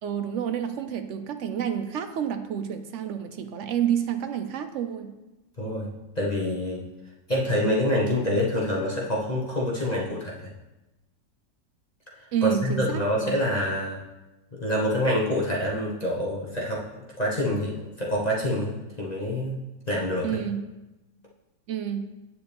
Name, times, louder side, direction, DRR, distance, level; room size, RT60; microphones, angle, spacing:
voice 1, 0.0-5.1 12.3-13.3 20.2-20.7 21.7-22.1, right 9 dB, 80° right, 8 dB, 0.6 m, -29 dB
voice 2, 5.6-5.9 6.1-6.8 7.3-10.5 12.1-14.0 14.6-16.8 17.2-17.7 18.0-19.6 19.9-20.4, left 1 dB, 30° left, -5 dB, 1.0 m, -26 dB
8.8 x 7.2 x 3.4 m, 1.0 s
omnidirectional pair, 1.8 m